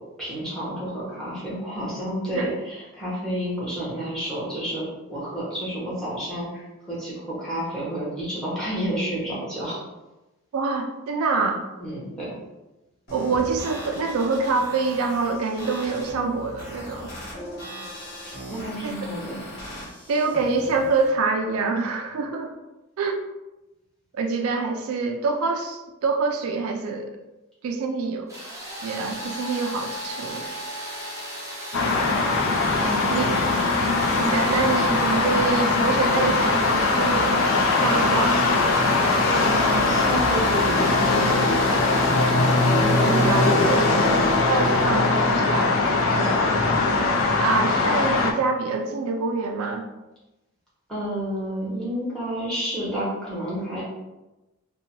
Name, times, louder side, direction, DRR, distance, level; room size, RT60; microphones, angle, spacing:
voice 1, 0.2-9.8 11.8-12.4 17.8-19.4 32.8-33.4 39.3-41.9 43.8-44.0 46.1-46.7 50.9-53.8, equal, 5° left, -8 dB, 0.9 m, -30 dB
voice 2, 10.5-11.6 13.1-17.1 18.8-18.9 20.1-22.5 23.0-23.2 24.1-27.1 27.6-28.3 28.8-30.5 33.1-33.3 34.1-37.4 37.8-38.4 42.8-44.2 44.5-45.7 47.4-49.9, right 4 dB, 80° right, 3 dB, 0.4 m, -26 dB
sound 1, 13.1-21.1, equal, 45° left, 1.3 m, -39 dB
sound 2, 28.3-46.0, right 1 dB, 15° right, 0.5 m, -36 dB
sound 3, 31.7-48.3, left 3 dB, 65° left, 0.4 m, -21 dB
2.7 x 2.2 x 2.9 m, 1.0 s
head